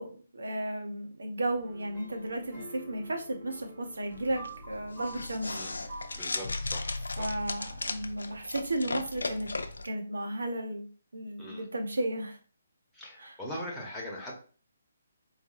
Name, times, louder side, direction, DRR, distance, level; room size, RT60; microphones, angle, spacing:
voice 1, 0.0-6.0 7.2-9.5 9.8-10.9 11.1-12.4 13.2-13.4, right 1 dB, 70° right, 4 dB, 0.9 m, -34 dB
sound 1, 1.5-6.5, right 2 dB, 25° right, 1.9 m, -47 dB
sound 2, 4.1-9.9, left 3 dB, 75° left, 0.4 m, -36 dB
voice 2, 6.1-7.3 11.4-11.6 12.9-14.4, equal, 5° left, -4 dB, 1.2 m, -41 dB
4.2 x 3.3 x 2.5 m, 0.40 s
figure-of-eight pair, 140°, 0 cm